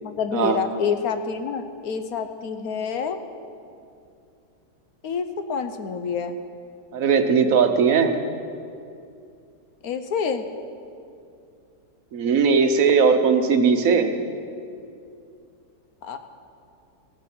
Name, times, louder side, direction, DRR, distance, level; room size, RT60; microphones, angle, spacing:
voice 1, 0.0-3.2 5.0-6.4 9.8-10.5 16.0-16.2, left 6 dB, 65° left, 8 dB, 1.2 m, -27 dB
voice 2, 6.9-8.1 12.1-14.1, right 5 dB, 60° right, 7 dB, 1.2 m, -19 dB
15.5 x 11.0 x 6.0 m, 2.4 s
omnidirectional pair, 1.8 m